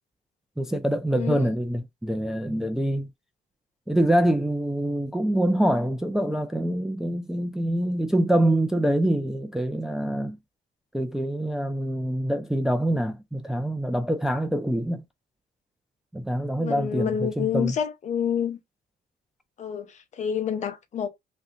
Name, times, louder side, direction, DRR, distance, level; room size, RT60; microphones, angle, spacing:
voice 1, 0.6-3.1 3.9-10.4 10.9-15.0 16.1-17.7, right 1 dB, 5° right, 0.3 m, -25 dB
voice 2, 1.1-1.5 16.6-18.6 19.6-21.1, left 8 dB, 45° left, 0.7 m, -28 dB
3.2 x 2.5 x 2.8 m
cardioid pair, 110°, 17 cm